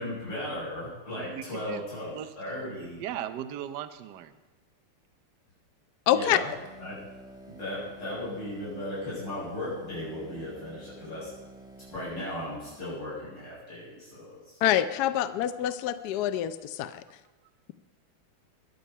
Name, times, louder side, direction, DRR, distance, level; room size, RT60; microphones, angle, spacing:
voice 1, 0.0-3.0 6.1-6.5 6.8-7.0 7.5-11.3 11.9-14.6, left 1 dB, 55° left, -9 dB, 7.4 m, -36 dB
voice 2, 1.2-1.8 2.1-2.3 2.8-4.3, right 10 dB, 60° right, 10 dB, 1.2 m, -38 dB
voice 3, 6.1-6.4 14.6-17.0, left 12 dB, 80° left, 12 dB, 0.9 m, -26 dB
sound 1, 6.5-12.7, right 2 dB, ahead, 1.3 m, -49 dB
22.0 x 8.0 x 5.5 m, 1.2 s
omnidirectional pair, 2.4 m